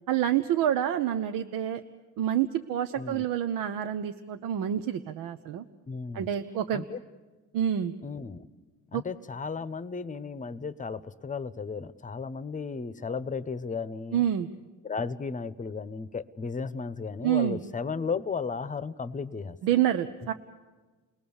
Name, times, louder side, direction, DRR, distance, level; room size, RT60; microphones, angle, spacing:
voice 1, 0.1-1.8 2.2-5.6 6.1-6.9 7.5-7.9 8.9-9.0 14.1-14.5 17.2-17.6 19.6-20.3, right 10 dB, 85° right, 9 dB, 0.9 m, -27 dB
voice 2, 2.9-3.3 5.9-6.3 6.7-7.0 8.0-8.5 8.9-14.2 14.8-19.6, left 5 dB, 25° left, 15 dB, 0.8 m, -34 dB
29.0 x 19.5 x 7.1 m, 1.3 s
cardioid pair, 105°, 32 cm